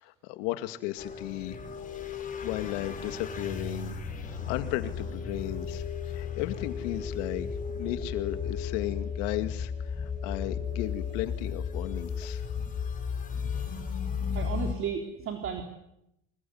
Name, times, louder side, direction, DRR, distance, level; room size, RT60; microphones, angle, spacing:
voice 1, 0.0-1.6 2.4-4.0 4.2-7.5 7.7-12.4, left 15 dB, 75° left, 10 dB, 2.4 m, -35 dB
sound 1, 1.0-14.7, left 6 dB, 20° left, 5.0 m, -34 dB
voice 2, 14.3-15.6, right 7 dB, 35° right, 4 dB, 3.5 m, -33 dB
25.5 x 22.0 x 9.6 m, 0.83 s
cardioid pair, 150°, 38 cm